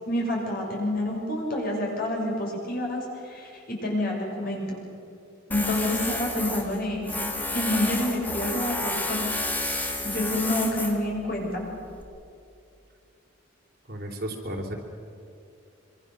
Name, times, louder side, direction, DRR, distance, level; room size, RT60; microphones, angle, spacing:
voice 1, 0.1-4.8 5.5-9.3 10.0-11.7, left 1 dB, 45° left, -1 dB, 6.5 m, -28 dB
Tools, 5.5-12.0, left 2 dB, 10° left, 2.1 m, -31 dB
voice 2, 13.9-14.7, equal, 50° right, 2 dB, 3.4 m, -33 dB
25.5 x 24.5 x 6.7 m, 2.5 s
head